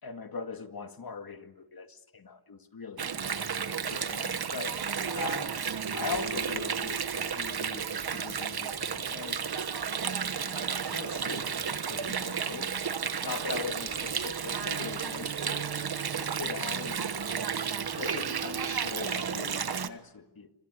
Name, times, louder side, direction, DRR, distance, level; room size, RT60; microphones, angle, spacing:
voice 1, 0.0-3.1 3.9-4.8 5.1-5.5 5.9-9.5 10.3-11.6 11.9-12.9 13.2-15.6 16.2-17.2 18.0-20.5, left 5 dB, 60° left, 7 dB, 2.2 m, -41 dB
Water, 3.0-19.9, right 6 dB, 65° right, 1.3 m, -32 dB
28.0 x 25.5 x 8.3 m, 0.97 s
wide cardioid pair, 105°, 41 cm